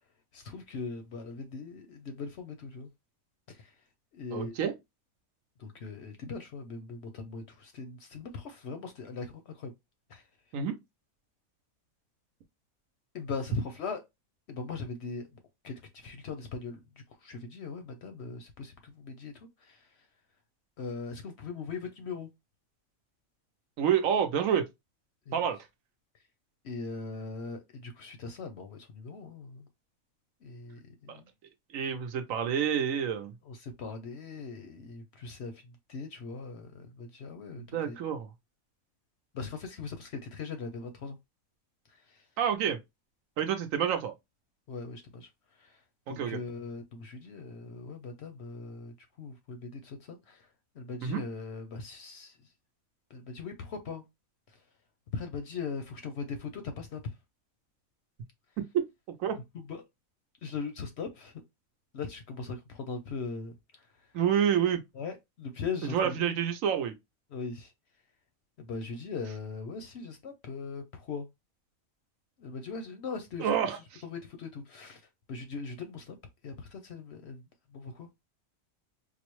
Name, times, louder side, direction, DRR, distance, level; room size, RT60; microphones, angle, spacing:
voice 1, 0.3-2.9 3.5-3.6 4.1-4.5 5.6-9.7 10.1-10.2 13.1-14.0 14.5-15.3 15.6-16.8 17.2-19.3 19.7-19.8 20.8-22.3 25.3-25.4 26.6-29.6 30.4-31.3 33.5-35.5 35.9-37.9 39.3-41.2 44.7-45.3 46.1-48.9 49.2-50.4 50.8-52.3 53.1-54.0 55.1-57.0 59.5-59.8 60.4-61.3 61.9-63.5 65.0-66.3 67.3-67.7 68.6-71.3 72.4-73.5 74.0-75.0 75.3-76.2 76.4-77.4 77.7-78.1, left 4 dB, 60° left, 0.8 m, -40 dB
voice 2, 4.3-4.7 10.5-10.8 23.8-24.7 25.3-25.6 31.1-31.2 31.7-33.3 37.7-38.3 42.4-42.8 43.4-44.1 46.1-46.4 51.0-51.2 58.6-58.8 59.2-59.4 64.1-64.8 65.8-66.9 73.4-74.0, right 8 dB, 70° right, 1.0 m, -28 dB
4.7 x 2.0 x 3.0 m
omnidirectional pair, 1.5 m